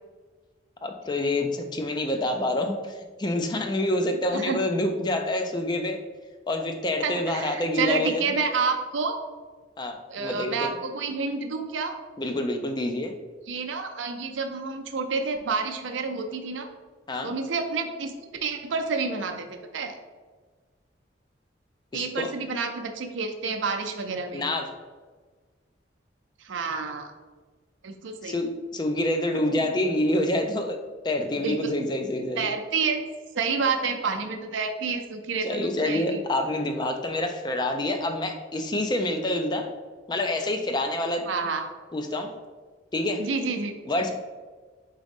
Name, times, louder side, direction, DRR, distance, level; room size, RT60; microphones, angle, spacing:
voice 1, 0.8-6.0 6.5-8.2 9.8-10.7 12.2-13.2 17.1-17.3 21.9-22.3 24.3-24.7 28.2-30.8 31.0-32.5 35.4-39.7 40.1-41.3 41.9-42.3 42.9-43.2 43.9-44.1, left 1 dB, 20° left, 5 dB, 0.3 m, -27 dB
voice 2, 7.0-9.2 10.1-12.0 13.5-16.7 17.2-18.1 18.4-19.5 19.7-20.0 21.9-24.5 26.4-27.1 27.8-28.4 29.5-29.7 31.4-31.7 32.4-33.0 33.3-36.2 41.3-41.7 43.2-43.7, right 4 dB, 85° right, 5 dB, 0.5 m, -29 dB
4.0 x 3.7 x 3.5 m, 1.4 s
head